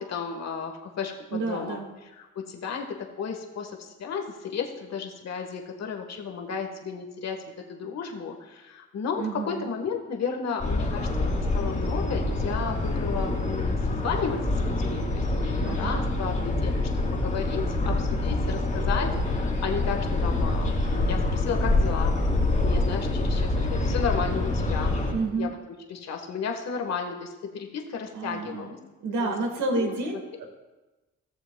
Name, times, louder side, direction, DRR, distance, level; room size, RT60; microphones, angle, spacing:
voice 1, 0.0-1.8 2.2-22.1 22.6-25.0 25.4-25.5 25.9-28.8 29.2-29.3 29.7-29.9, left 6 dB, 60° left, 3 dB, 1.4 m, -33 dB
voice 2, 1.3-1.9 9.2-9.7 15.6-16.1 25.1-25.5 28.1-28.8 29.0-30.5, right 3 dB, 75° right, 3 dB, 1.7 m, -30 dB
sound 1, 10.6-25.1, left 2 dB, 25° left, 2.4 m, -26 dB
17.0 x 6.9 x 2.3 m, 1.1 s
cardioid pair, 90°, 30 cm